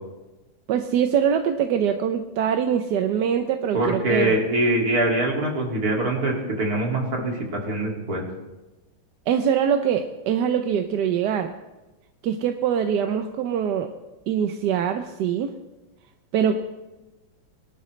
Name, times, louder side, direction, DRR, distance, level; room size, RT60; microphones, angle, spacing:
voice 1, 0.7-4.3 9.3-11.5 12.2-13.9 14.3-15.5 16.3-16.6, right 8 dB, 65° right, 6 dB, 1.2 m, -23 dB
voice 2, 3.7-8.2, right 1 dB, 45° right, -1 dB, 2.9 m, -23 dB
22.0 x 11.5 x 3.2 m, 1.1 s
omnidirectional pair, 2.2 m